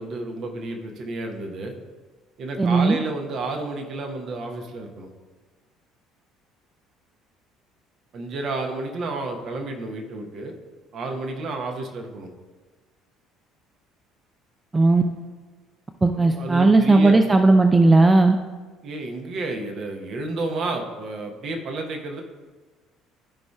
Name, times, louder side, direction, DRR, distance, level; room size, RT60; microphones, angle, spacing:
voice 1, 0.0-1.7 2.4-5.1 8.1-10.5 10.9-12.3 16.1-17.2 18.8-22.2, right 2 dB, 50° right, 3 dB, 1.0 m, -31 dB
voice 2, 2.6-3.0 14.7-15.0 16.0-18.4, right 3 dB, 20° right, 6 dB, 0.4 m, -16 dB
12.5 x 5.1 x 2.3 m, 1.3 s
figure-of-eight pair, 55°, 0 cm